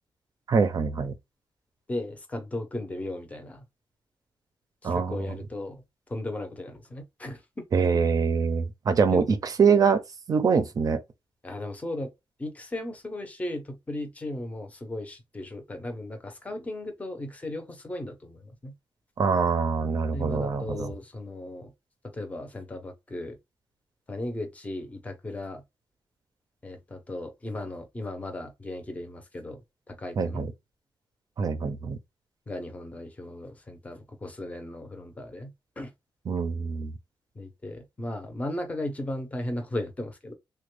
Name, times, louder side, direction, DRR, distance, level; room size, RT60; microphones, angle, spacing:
voice 1, 0.5-1.1 4.8-5.3 7.7-10.0 10.3-11.0 19.2-20.9 30.2-30.5 31.4-32.0 36.3-36.9, right 5 dB, 45° right, 0.5 m, -24 dB
voice 2, 1.9-3.7 4.8-5.8 6.1-7.6 7.9-8.0 9.1-9.3 11.4-12.1 12.4-18.7 20.1-21.7 22.0-23.4 24.1-25.6 26.6-29.6 29.9-30.4 32.5-35.9 37.3-40.3, left 1 dB, 15° left, 0.6 m, -36 dB
3.5 x 2.2 x 3.2 m
wide cardioid pair, 175°, 9 cm